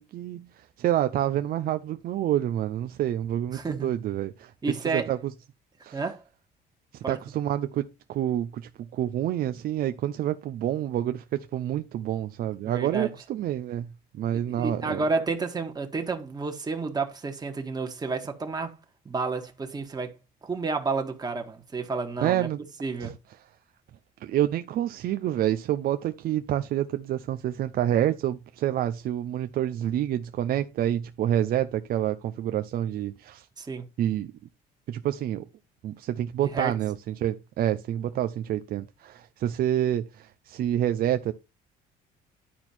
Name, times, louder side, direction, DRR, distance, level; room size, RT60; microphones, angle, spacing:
voice 1, 0.0-4.5 4.9-5.2 5.8-6.0 6.9-13.9 14.1-15.0 22.2-22.6 23.0-23.1 24.2-33.5 34.0-34.3 34.9-35.4 35.8-41.3, right 11 dB, 60° right, 0.6 m, -28 dB
voice 2, 3.5-3.9 4.6-5.1 5.9-6.2 7.0-7.2 12.6-13.1 14.5-18.7 19.0-20.1 20.4-22.5 22.8-23.2 33.6-33.9 36.5-36.7, right 4 dB, 25° right, 1.6 m, -30 dB
10.0 x 4.4 x 4.3 m
cardioid pair, 110°, 17 cm